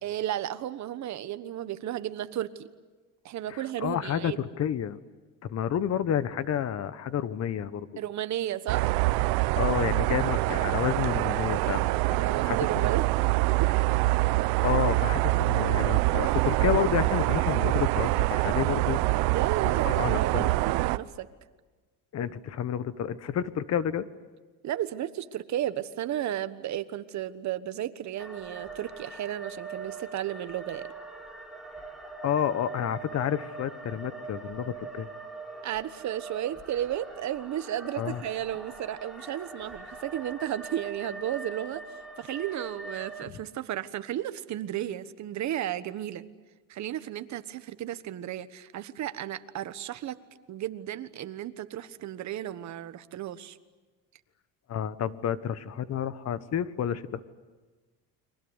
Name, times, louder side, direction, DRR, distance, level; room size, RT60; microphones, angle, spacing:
voice 1, 0.0-2.7 3.2-4.4 8.0-8.9 12.2-13.1 13.6-13.7 19.3-21.3 24.6-30.9 35.6-41.8 42.2-46.2 46.7-50.2 50.5-53.6, right 12 dB, 50° right, 12 dB, 1.3 m, -33 dB
voice 2, 3.5-5.0 5.4-7.9 9.5-12.9 14.6-19.0 19.6-20.5 22.1-24.0 32.2-35.1 38.0-38.2 54.7-57.2, left 9 dB, 45° left, 14 dB, 1.3 m, -30 dB
sound 1, 8.7-21.0, right 20 dB, 85° right, 0.9 m, -25 dB
sound 2, 28.2-43.2, right 3 dB, ahead, 3.8 m, -42 dB
30.0 x 23.5 x 8.1 m, 1.3 s
cardioid pair, 125°, 36 cm